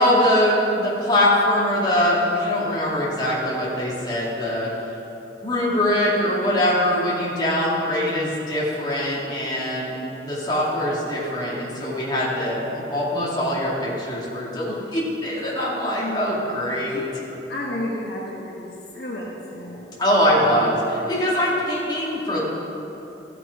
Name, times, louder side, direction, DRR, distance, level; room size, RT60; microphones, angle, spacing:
voice 1, 0.0-4.7 5.4-17.0 20.0-22.4, left 1 dB, 25° left, -7 dB, 2.2 m, -22 dB
voice 2, 16.0-17.0 17.5-18.7 18.9-19.8, left 1 dB, 60° left, -4 dB, 1.2 m, -32 dB
14.5 x 5.9 x 4.6 m, 2.9 s
head